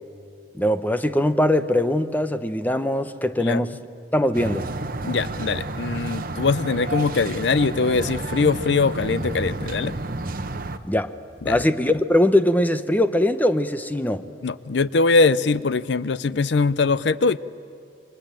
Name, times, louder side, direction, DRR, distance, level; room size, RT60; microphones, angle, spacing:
voice 1, 0.6-3.7 4.1-4.7 10.8-11.1 11.4-14.2, left 1 dB, 10° left, 10 dB, 0.9 m, -21 dB
sound 1, 4.3-10.8, right 2 dB, 50° right, 1.1 m, -30 dB
voice 2, 5.0-9.9 11.5-11.6 14.4-17.4, left 4 dB, 65° left, 17 dB, 0.6 m, -22 dB
28.0 x 24.0 x 8.9 m, 2.6 s
head